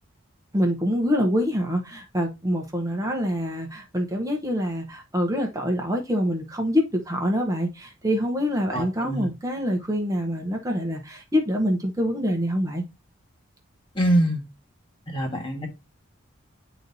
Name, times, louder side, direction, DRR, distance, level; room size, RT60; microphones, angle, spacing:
voice 1, 0.5-12.8, equal, 15° right, 0.9 m, -25 dB
voice 2, 8.7-9.3 13.9-14.4 15.1-15.7, right 1 dB, 25° left, 1.5 m, -24 dB
9.9 x 4.0 x 2.7 m
head